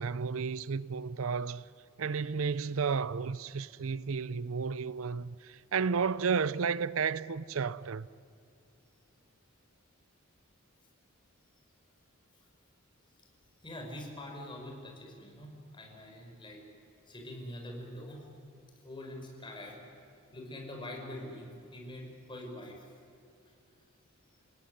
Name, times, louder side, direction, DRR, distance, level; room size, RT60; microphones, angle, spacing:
voice 1, 0.0-1.7 2.0-8.1, right 5 dB, 70° right, 0.5 m, -32 dB
voice 2, 13.6-16.6 17.1-18.2 18.8-19.8 20.3-22.9, left 1 dB, 25° left, 5.8 m, -44 dB
29.5 x 17.5 x 10.0 m
head